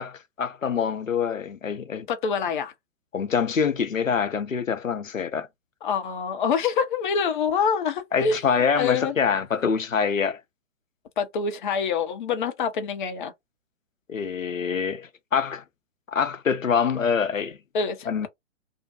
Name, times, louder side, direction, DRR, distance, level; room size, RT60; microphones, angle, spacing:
voice 1, 0.0-2.1 3.1-5.5 8.1-10.4 14.1-15.6 16.1-17.6 18.1-18.3, left 6 dB, 90° left, 0.7 m, -25 dB
voice 2, 2.1-2.7 5.8-8.4 8.8-9.1 11.2-13.3 17.7-18.3, left 6 dB, 40° left, 0.7 m, -26 dB
2.6 x 2.1 x 2.8 m
figure-of-eight pair, 120°, 38 cm